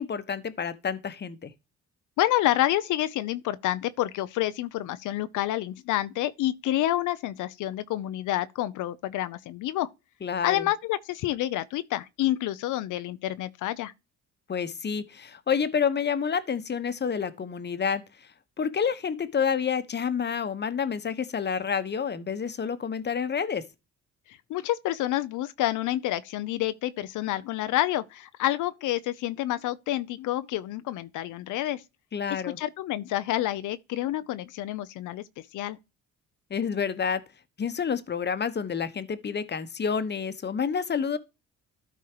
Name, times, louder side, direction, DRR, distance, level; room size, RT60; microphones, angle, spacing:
voice 1, 0.0-1.5 10.2-10.7 14.5-18.0 18.6-23.6 32.1-32.6 36.5-37.2 37.6-41.2, left 6 dB, 35° left, 1.0 m, -29 dB
voice 2, 2.2-9.9 10.4-13.9 24.3-31.8 32.3-35.8, left 14 dB, 80° left, 0.6 m, -28 dB
13.0 x 4.6 x 2.9 m
cardioid pair, 90°, 30 cm